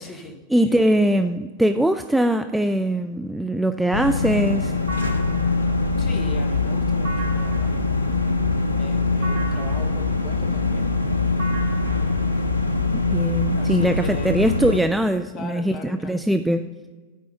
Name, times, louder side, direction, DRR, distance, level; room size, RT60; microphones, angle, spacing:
voice 1, 0.0-0.9 6.0-7.7 8.8-10.9 13.6-14.4 15.3-16.2, left 3 dB, 35° left, 6 dB, 1.2 m, -39 dB
voice 2, 0.5-4.8 12.9-16.6, right 1 dB, 5° right, 7 dB, 0.3 m, -21 dB
sound 1, 3.9-14.8, left 3 dB, 80° left, 0.6 m, -24 dB
sound 2, 4.9-13.6, left 4 dB, 70° right, 1.8 m, -29 dB
9.1 x 4.7 x 6.7 m, 1.3 s
figure-of-eight pair, 90°, 0 cm